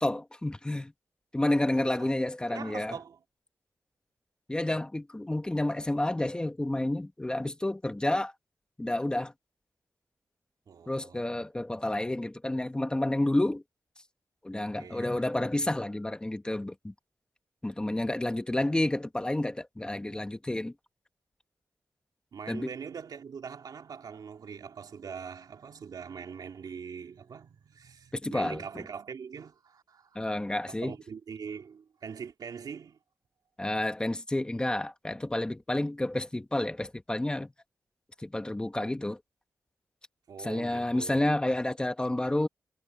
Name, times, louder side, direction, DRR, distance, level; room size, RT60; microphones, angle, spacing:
voice 1, 0.0-0.9 1.3-3.0 4.5-8.3 8.8-9.3 10.9-13.6 14.4-16.9 17.6-20.7 22.5-22.7 28.1-28.8 30.1-30.9 33.6-37.5 38.2-39.2 40.4-42.5, left 1 dB, 15° left, 1.4 m, -30 dB
voice 2, 1.8-2.1 2.5-3.2 10.7-11.2 14.6-15.2 22.3-30.3 30.7-33.0 40.3-41.3, right 6 dB, 80° right, 2.5 m, -43 dB
wide cardioid pair, 135°, 7 cm